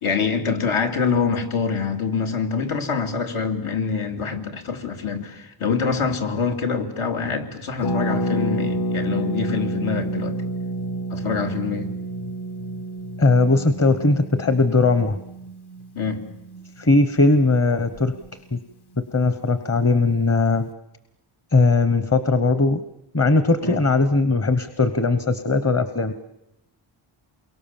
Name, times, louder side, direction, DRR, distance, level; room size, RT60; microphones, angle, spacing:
voice 1, 0.0-10.4 11.1-11.9 15.9-16.2 23.6-23.8, left 5 dB, 80° left, 4 dB, 3.0 m, -25 dB
Harp, 7.8-17.4 17.7-17.8 17.9-18.3, right 1 dB, 50° left, 1.2 m, -29 dB
voice 2, 13.2-15.2 16.8-18.1 18.5-18.6 19.1-20.7 21.5-22.8 23.1-26.1, left 3 dB, 30° left, 10 dB, 1.1 m, -19 dB
28.5 x 23.5 x 7.3 m, 0.89 s
wide cardioid pair, 135°, 49 cm